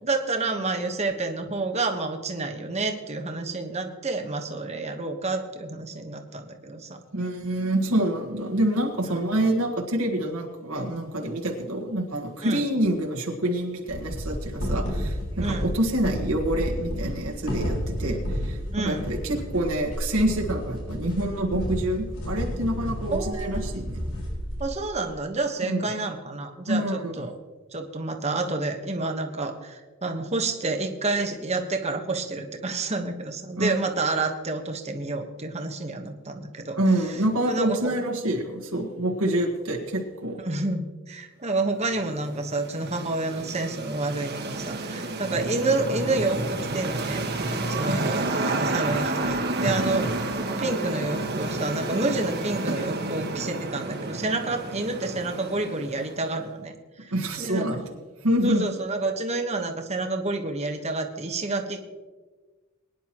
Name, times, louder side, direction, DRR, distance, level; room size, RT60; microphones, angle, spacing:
voice 1, 0.0-7.0 9.1-9.2 12.4-12.6 15.4-15.7 18.7-19.1 23.1-23.6 24.6-27.3 27.7-36.8 37.1-37.2 37.4-37.9 40.4-47.2 47.6-50.2 50.6-57.1 57.4-57.8 58.4-61.8, right 2 dB, 30° right, 5 dB, 1.2 m, -29 dB
voice 2, 7.1-24.0 25.6-25.8 26.7-27.3 33.6-33.7 36.8-40.4 47.9-48.1 49.8-50.1 57.1-57.8 58.2-58.6, right 1 dB, 75° right, 0 dB, 1.6 m, -27 dB
sound 1, 13.9-24.7, equal, 85° left, 4.9 m, -31 dB
sound 2, 41.8-56.3, right 2 dB, 50° right, 1.5 m, -30 dB
22.0 x 10.5 x 3.0 m, 1.3 s
head